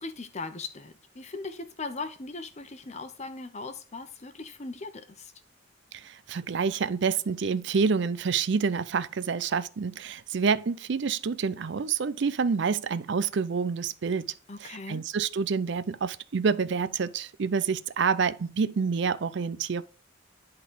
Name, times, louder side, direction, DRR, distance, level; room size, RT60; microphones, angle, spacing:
voice 1, 0.0-5.3 14.5-15.0, left 3 dB, 35° left, 0.9 m, -39 dB
voice 2, 5.9-14.3 14.6-19.8, right 5 dB, 65° right, 0.5 m, -28 dB
11.0 x 4.0 x 3.8 m
head